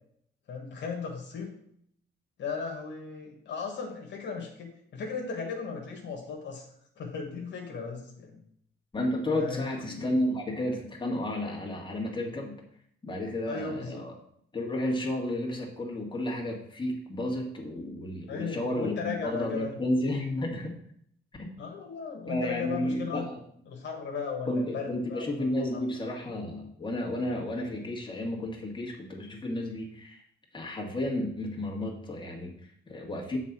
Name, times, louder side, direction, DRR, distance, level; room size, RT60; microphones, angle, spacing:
voice 1, 0.5-1.6 2.4-6.7 7.0-8.4 9.3-10.2 13.5-14.0 18.3-19.7 21.6-23.3 23.7-25.8, left 5 dB, 65° left, 1 dB, 1.6 m, -36 dB
voice 2, 8.9-12.5 13.0-14.1 14.5-20.7 21.4-21.5 22.3-23.4 24.5-30.2 30.5-33.4, left 1 dB, 25° left, -2 dB, 1.9 m, -32 dB
7.1 x 4.1 x 6.0 m, 0.68 s
cardioid pair, 90°, 20 cm